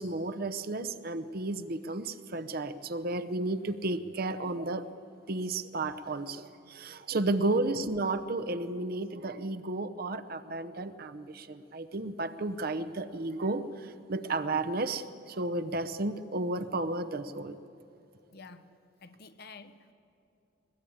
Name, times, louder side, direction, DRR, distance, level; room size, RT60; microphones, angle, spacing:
voice 1, 0.0-4.9 5.3-17.6, right 2 dB, 50° right, 10 dB, 0.8 m, -33 dB
voice 2, 18.3-18.7 19.0-19.9, left 3 dB, 55° left, 11 dB, 1.0 m, -49 dB
21.0 x 21.0 x 8.8 m, 2.7 s
head